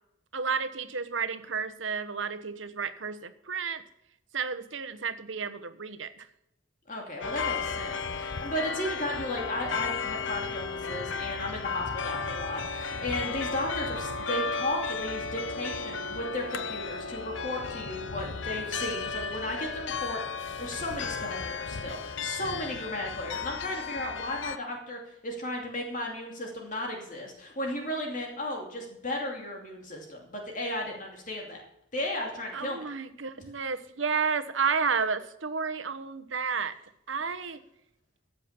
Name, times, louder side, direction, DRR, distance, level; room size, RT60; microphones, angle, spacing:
voice 1, 0.3-3.8 4.3-6.3 32.5-36.7 37.1-37.6, right 5 dB, 85° right, 10 dB, 1.1 m, -31 dB
voice 2, 6.9-31.6 31.9-32.8, left 1 dB, 45° left, 0 dB, 2.7 m, -35 dB
sound 1, 7.2-24.6, left 5 dB, 80° left, 0.8 m, -34 dB
15.0 x 7.7 x 6.9 m, 0.81 s
head